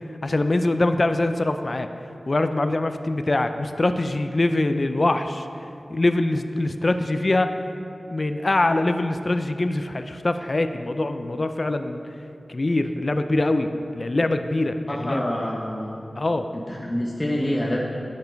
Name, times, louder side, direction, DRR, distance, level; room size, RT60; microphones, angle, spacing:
voice 1, 0.2-1.9 2.3-5.4 5.9-7.6 8.1-12.0 12.5-15.2 16.2-16.5, left 2 dB, 50° left, 8 dB, 0.5 m, -23 dB
voice 2, 14.9-15.9 16.5-17.8, left 1 dB, 25° left, -4 dB, 1.1 m, -27 dB
10.5 x 7.5 x 4.6 m, 2.7 s
wide cardioid pair, 55°, 0 cm